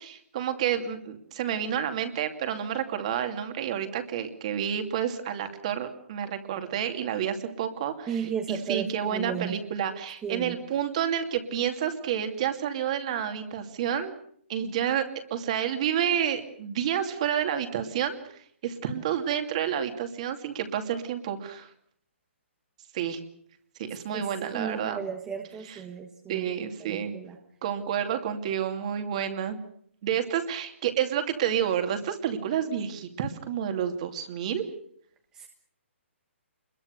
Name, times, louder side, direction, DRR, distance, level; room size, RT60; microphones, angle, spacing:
voice 1, 0.1-8.1 8.5-14.1 14.5-21.7 22.9-23.2 23.8-25.0 25.7-25.8 26.3-27.2 27.6-29.6 30.0-34.6, right 9 dB, 30° right, 7 dB, 2.6 m, -29 dB
voice 2, 8.1-9.6 10.2-10.6 24.1-24.3 24.5-27.4 35.3-35.5, right 7 dB, 10° right, 3 dB, 1.4 m, -35 dB
26.5 x 22.0 x 6.7 m, 0.65 s
hypercardioid pair, 175°, 7 cm